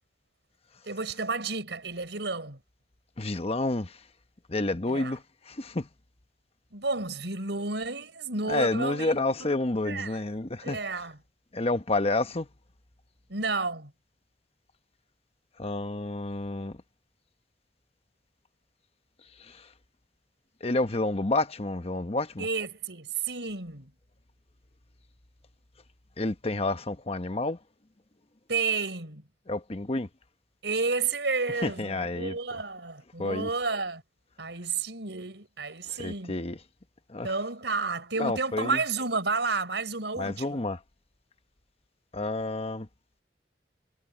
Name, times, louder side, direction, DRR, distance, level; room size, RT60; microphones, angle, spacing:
voice 1, 0.8-2.6 4.9-5.1 6.7-9.6 9.9-10.2 10.6-11.2 13.3-13.9 22.4-23.9 28.5-29.2 30.6-34.0 34.4-36.3 37.2-40.6, right 4 dB, 80° right, 4.8 m, -31 dB
voice 2, 3.2-4.0 4.5-5.9 8.4-10.8 11.5-12.5 15.6-16.8 19.4-19.7 20.6-22.5 26.2-27.6 29.5-30.1 31.6-32.4 33.2-33.5 35.9-36.6 37.1-37.3 38.2-38.8 40.1-40.8 42.1-42.9, left 2 dB, 35° left, 1.1 m, -29 dB
head